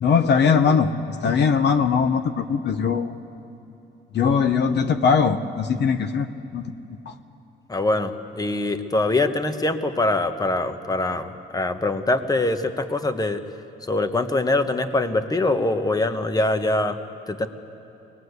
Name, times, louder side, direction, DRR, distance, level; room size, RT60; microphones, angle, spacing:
voice 1, 0.0-3.1 4.1-6.3 6.5-6.7 7.1-7.2, left 6 dB, 60° left, 8 dB, 0.9 m, -20 dB
voice 2, 7.7-13.4 13.8-17.0 17.3-17.5, left 2 dB, 20° left, 8 dB, 1.2 m, -23 dB
22.0 x 19.5 x 8.1 m, 2.9 s
cardioid pair, 90°, 20 cm